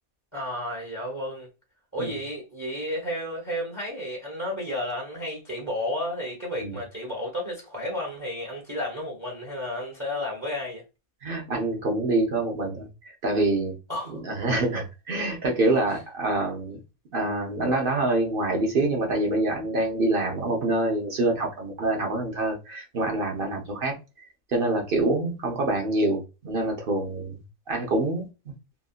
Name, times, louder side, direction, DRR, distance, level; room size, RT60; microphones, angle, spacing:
voice 1, 0.3-1.5 1.9-10.8 13.9-14.2 15.9-16.0, left 1 dB, 15° right, 0.9 m, -32 dB
voice 2, 11.2-13.7 14.1-16.8 17.1-23.9 24.5-27.4 27.7-28.3, right 2 dB, 50° right, 0.7 m, -26 dB
2.9 x 2.5 x 2.3 m
omnidirectional pair, 1.6 m